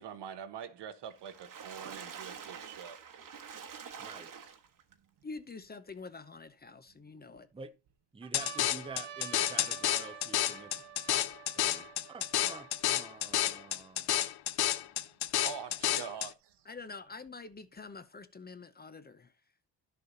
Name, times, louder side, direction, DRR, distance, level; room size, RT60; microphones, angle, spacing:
voice 1, 0.0-3.0 15.4-16.6, right 8 dB, 70° right, 1.3 m, -44 dB
Water / Splash splatter, 1.1-4.9 5.5-5.6 5.9-6.0, right 7 dB, 50° right, 1.5 m, -46 dB
sound 1, 3.9-4.0 4.7-5.9 6.6-7.4 7.9-8.0 8.2-13.8 14.6-14.7 14.8-15.8 16.8-17.8, right 11 dB, 90° right, 1.4 m, -50 dB
voice 2, 4.0-4.5 7.5-7.7 8.1-10.7 11.1-11.3 11.6-14.1, right 4 dB, 15° right, 0.6 m, -48 dB
voice 3, 5.2-7.5 16.7-19.3, left 4 dB, 20° left, 0.7 m, -46 dB
sound 2, 8.3-16.3, left 13 dB, 65° left, 0.7 m, -30 dB
11.0 x 6.7 x 4.0 m
cardioid pair, 155°, 42 cm